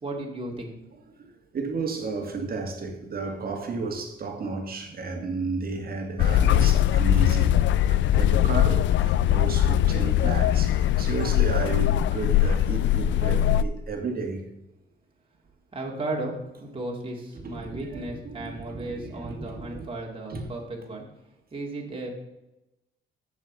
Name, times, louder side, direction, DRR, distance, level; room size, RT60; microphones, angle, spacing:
voice 1, 0.0-0.7 15.7-21.0 21.5-22.1, right 2 dB, 25° right, 2.6 m, -35 dB
voice 2, 1.5-14.5 17.3-19.9 20.3-20.4, right 4 dB, 50° right, 2.3 m, -33 dB
sound 1, 6.2-13.6, left 11 dB, 70° left, 0.4 m, -21 dB
7.5 x 7.4 x 7.6 m
cardioid pair, 90°, 20 cm